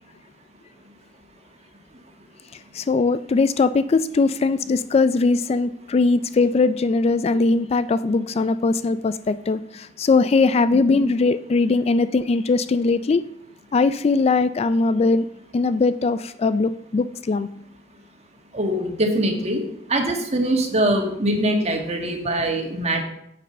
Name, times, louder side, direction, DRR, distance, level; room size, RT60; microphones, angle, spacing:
voice 1, 2.7-13.2 13.7-15.3 15.5-17.5, left 3 dB, 35° left, 14 dB, 0.3 m, -20 dB
voice 2, 18.5-19.6 19.9-23.0, right 1 dB, 35° right, 3 dB, 1.7 m, -23 dB
9.5 x 7.6 x 5.3 m, 0.75 s
head